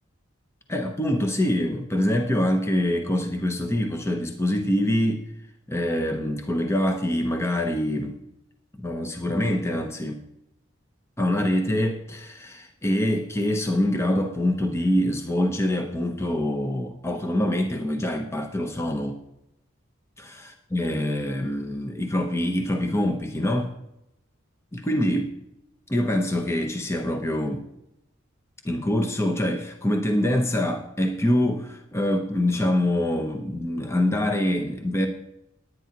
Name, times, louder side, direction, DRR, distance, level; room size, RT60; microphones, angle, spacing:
voice 1, 0.7-5.2 5.7-8.2 8.8-10.2 11.2-19.2 20.2-23.7 24.7-25.4 25.9-27.7 28.6-35.1, left 1 dB, 15° left, 3 dB, 0.9 m, -25 dB
19.5 x 9.4 x 2.9 m, 0.82 s
head